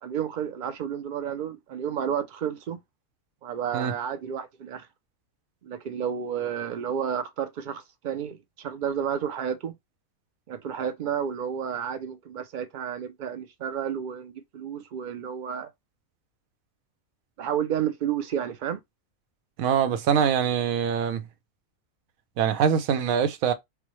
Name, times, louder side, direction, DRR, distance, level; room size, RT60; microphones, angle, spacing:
voice 1, 0.0-2.8 3.4-4.9 5.6-9.7 10.5-15.7 17.4-18.8, right 8 dB, 65° right, 0.5 m, -31 dB
voice 2, 19.6-21.2 22.4-23.5, right 7 dB, 85° right, 1.1 m, -23 dB
4.6 x 2.1 x 3.0 m
omnidirectional pair, 1.4 m